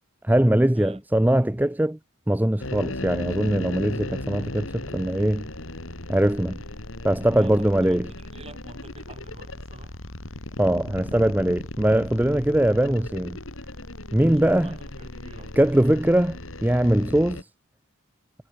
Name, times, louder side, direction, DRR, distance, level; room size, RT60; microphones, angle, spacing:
voice 1, 0.2-2.0 2.3-5.5 6.1-6.6 7.0-8.1 10.6-13.4 14.1-14.7 15.6-17.4, right 1 dB, 10° right, 0.5 m, -21 dB
sound 1, 2.6-17.4, left 1 dB, 75° left, 4.0 m, -37 dB
voice 2, 7.3-10.0 14.4-15.6, right 2 dB, 30° right, 4.0 m, -46 dB
head